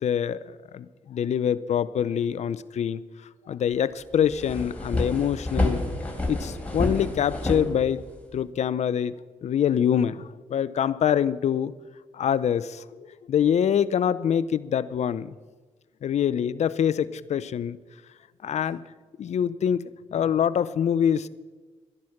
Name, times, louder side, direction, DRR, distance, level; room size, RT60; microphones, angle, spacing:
voice 1, 0.0-3.0 3.5-5.8 6.3-8.0 8.3-11.7 12.1-15.3 16.0-17.8 18.4-18.8 19.2-21.3, left 8 dB, 65° left, 17 dB, 0.6 m, -25 dB
sound 1, 3.7-3.8 4.1-8.4, left 2 dB, 10° left, 4.0 m, -29 dB
12.5 x 10.5 x 5.9 m, 1.3 s
supercardioid pair, 45°, 13 cm